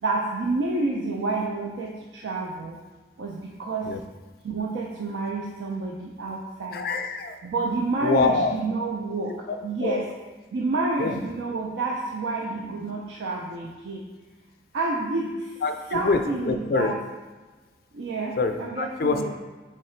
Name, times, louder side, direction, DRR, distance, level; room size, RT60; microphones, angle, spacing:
voice 1, 0.0-2.8 3.2-3.9 4.4-6.9 7.4-10.1 10.5-14.1 14.7-15.5 15.9-17.0 17.9-19.3, right 3 dB, 85° right, -1 dB, 0.4 m, -29 dB
voice 2, 6.7-7.4 8.0-8.6 9.5-10.0 11.0-11.2 15.6-16.2 16.5-16.9 18.4-19.3, left 3 dB, 55° left, 7 dB, 0.3 m, -25 dB
3.7 x 3.2 x 4.3 m, 1.3 s
head